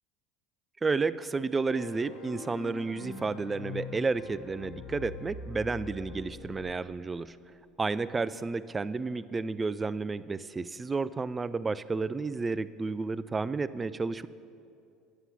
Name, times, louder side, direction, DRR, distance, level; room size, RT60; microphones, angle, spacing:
voice 1, 0.8-7.4 7.8-14.3, right 4 dB, 20° right, 16 dB, 0.3 m, -31 dB
sound 1, 1.7-6.7, left 4 dB, 70° left, 0.9 m, -43 dB
9.8 x 7.2 x 5.6 m, 2.5 s
hypercardioid pair, 75°, 0 cm